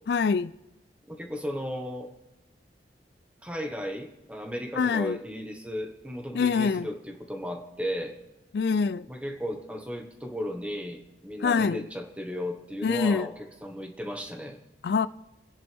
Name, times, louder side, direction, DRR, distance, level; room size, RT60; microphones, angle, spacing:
voice 1, 0.1-0.5 4.7-5.2 6.3-6.9 8.5-9.1 11.4-11.8 12.8-13.3 14.8-15.1, left 5 dB, 70° left, 0.4 m, -24 dB
voice 2, 1.1-2.1 3.4-8.2 9.1-13.3 13.6-14.6, equal, 5° right, 1.4 m, -35 dB
29.0 x 10.5 x 3.5 m
head